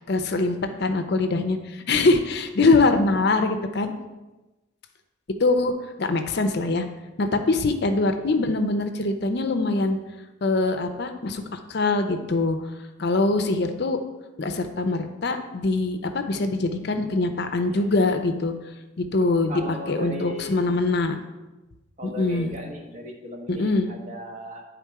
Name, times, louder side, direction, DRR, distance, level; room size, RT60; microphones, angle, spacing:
voice 1, 0.1-3.9 5.4-5.7 6.0-6.8 7.2-10.0 10.4-12.6 13.0-14.0 14.4-18.5 19.0-21.2 22.0-22.5 23.5-23.9, left 3 dB, 55° left, 7 dB, 0.5 m, -23 dB
voice 2, 19.5-20.6 22.0-24.6, equal, 35° right, 2 dB, 1.0 m, -37 dB
9.7 x 3.7 x 4.6 m, 1.1 s
head